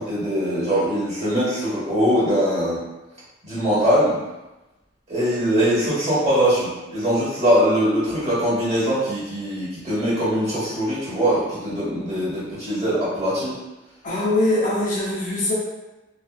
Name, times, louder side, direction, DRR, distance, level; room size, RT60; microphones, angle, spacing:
voice 1, 0.0-2.8 3.4-4.2 5.1-13.6, equal, 35° right, -10 dB, 1.3 m, -22 dB
voice 2, 14.0-15.5, left 2 dB, 40° left, -5 dB, 0.5 m, -22 dB
2.5 x 2.2 x 2.3 m, 1.0 s
head